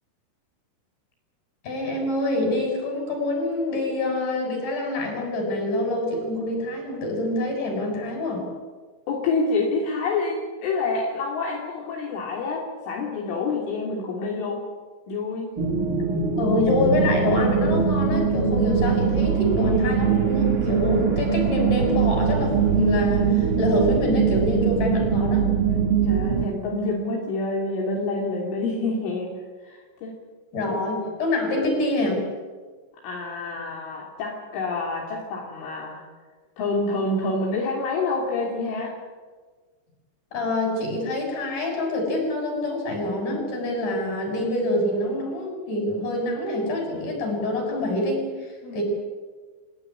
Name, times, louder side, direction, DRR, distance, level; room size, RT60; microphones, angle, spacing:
voice 1, 1.6-8.4 16.4-25.5 30.5-32.2 40.3-48.8, left 2 dB, 40° left, 2 dB, 8.5 m, -26 dB
voice 2, 9.1-14.6 15.1-15.5 26.0-29.3 29.6-30.2 30.7-30.8 33.0-36.0 36.6-38.9 48.6-48.8, left 3 dB, 70° left, -2 dB, 5.4 m, -27 dB
sound 1, 15.6-26.5, right 6 dB, 70° right, 1.2 m, -22 dB
28.0 x 17.0 x 10.0 m, 1.4 s
omnidirectional pair, 5.9 m